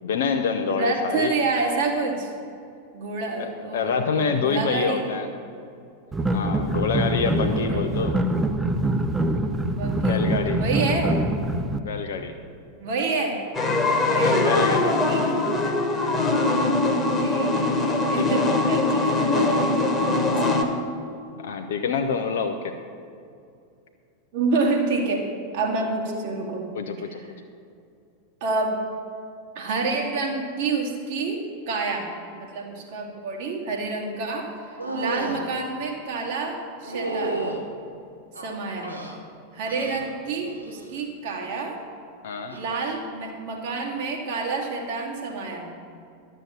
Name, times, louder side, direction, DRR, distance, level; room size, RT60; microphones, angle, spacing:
voice 1, 0.0-1.3 3.4-5.3 6.3-8.2 10.0-10.6 11.8-12.3 14.1-14.9 16.6-16.8 17.7-17.8 18.2-18.3 21.4-22.7 26.7-27.2 42.2-42.6, left 5 dB, 60° left, 4 dB, 0.7 m, -27 dB
voice 2, 0.7-2.3 2.9-5.1 7.2-8.1 9.7-11.2 12.8-13.4 14.1-15.5 17.2-20.6 24.3-25.3 25.5-26.7 28.4-28.8 29.6-32.1 32.3-34.5 34.9-37.4 38.4-38.9 39.5-41.8 42.5-45.7, right 3 dB, 50° right, -1 dB, 2.1 m, -28 dB
sound 1, 6.1-11.8, right 1 dB, 10° right, 0.6 m, -24 dB
sound 2, 13.5-20.6, left 2 dB, 15° left, 1.5 m, -22 dB
sound 3, 34.8-35.4 36.8-37.6 38.3-39.2 39.7-40.1 40.4-40.9 42.4-42.6, right 2 dB, 85° right, 1.3 m, -31 dB
12.0 x 6.8 x 7.3 m, 2.4 s
figure-of-eight pair, 90°, 0 cm